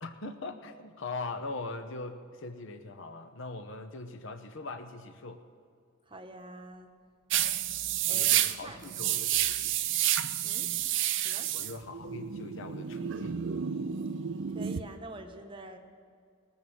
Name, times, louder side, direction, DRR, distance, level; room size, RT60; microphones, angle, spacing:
voice 1, 0.0-5.4 8.1-9.8 11.5-13.4 14.1-14.2, left 3 dB, 60° left, 8 dB, 0.9 m, -41 dB
voice 2, 6.1-6.9 8.1-8.8 10.4-10.7 11.2-11.5 14.5-15.8, right 1 dB, 25° right, 6 dB, 0.9 m, -46 dB
sound 1, 7.3-14.8, right 11 dB, 60° right, 0.5 m, -30 dB
20.5 x 7.2 x 6.3 m, 2.2 s
head